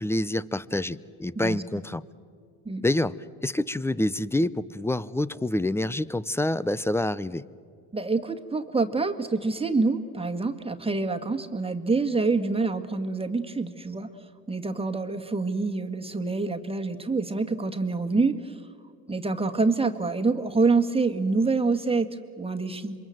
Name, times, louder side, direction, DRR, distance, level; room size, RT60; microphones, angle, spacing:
voice 1, 0.0-2.0 2.8-3.1 3.4-7.4, left 1 dB, 5° left, 19 dB, 0.6 m, -27 dB
voice 2, 7.9-14.1 14.5-18.6 19.1-22.1 22.4-23.0, right 3 dB, 15° right, 5 dB, 1.8 m, -26 dB
27.0 x 23.0 x 7.8 m, 2.2 s
supercardioid pair, 80°, 42 cm